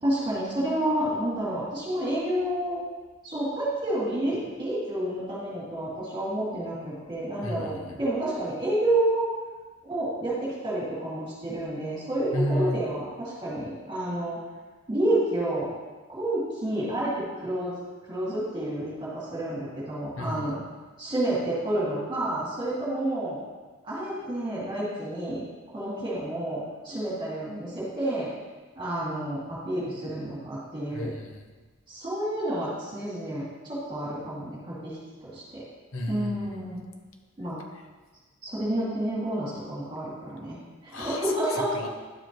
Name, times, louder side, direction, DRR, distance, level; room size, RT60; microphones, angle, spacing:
voice 1, 0.0-2.8 3.2-9.3 9.8-14.4 14.9-15.7 16.1-17.7 18.1-20.6 21.0-23.4 23.8-28.3 28.8-31.1 31.9-35.0 35.2-35.6 36.1-36.8 37.4-37.6 38.4-40.6 40.8-41.7, right 1 dB, 25° right, -8 dB, 2.4 m, -29 dB
voice 2, 7.4-7.9 12.3-12.8 20.2-20.5 30.9-31.4 35.9-36.5 40.9-41.2 41.5-41.9, equal, 70° left, 4 dB, 0.9 m, -32 dB
11.0 x 4.9 x 3.1 m, 1.3 s
head